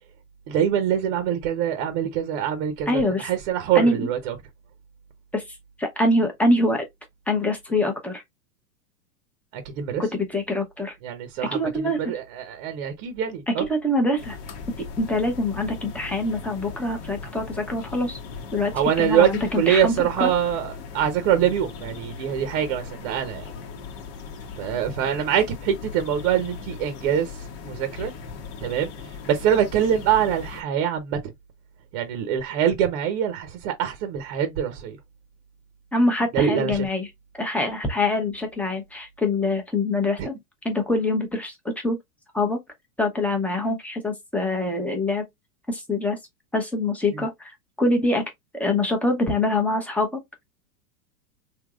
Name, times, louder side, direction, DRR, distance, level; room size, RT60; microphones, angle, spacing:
voice 1, 0.5-4.3 9.5-10.0 11.0-13.6 18.7-19.3 19.5-23.5 24.6-28.1 28.6-31.2 31.9-35.0 36.3-36.9 40.2-40.3 47.1-47.2, right 9 dB, 45° right, 0.9 m, -24 dB
voice 2, 2.9-3.3 3.7-4.1 5.3-5.4 5.8-6.8 7.3-8.2 10.0-10.9 11.5-12.1 13.7-14.4 15.0-18.2 18.5-18.7 19.0-20.3 35.9-37.1 37.3-40.3 40.6-42.0 42.3-42.6 43.0-45.2 45.7-46.2 46.5-48.2 48.5-50.1, left 2 dB, 5° left, 0.8 m, -24 dB
sound 1, 14.2-30.6, left 5 dB, 50° left, 1.1 m, -38 dB
3.5 x 2.9 x 2.4 m
hypercardioid pair, 130°, 49 cm